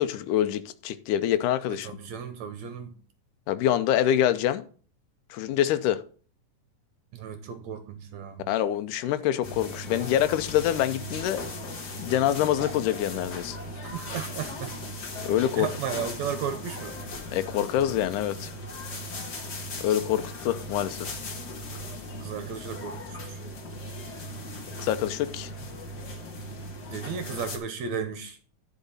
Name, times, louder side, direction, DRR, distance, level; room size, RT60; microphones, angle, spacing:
voice 1, 0.0-2.0 3.5-4.7 5.3-6.0 8.5-11.4 12.0-13.6 15.2-16.0 17.3-18.6 19.8-21.1 24.8-25.5, left 11 dB, 75° left, 2.2 m, -26 dB
voice 2, 1.8-2.9 7.1-8.5 13.8-14.8 15.5-17.0 22.2-23.5 26.9-28.4, right 7 dB, 70° right, 1.8 m, -34 dB
sound 1, 9.4-27.6, left 1 dB, 50° left, 1.3 m, -38 dB
11.0 x 5.1 x 5.5 m
omnidirectional pair, 3.8 m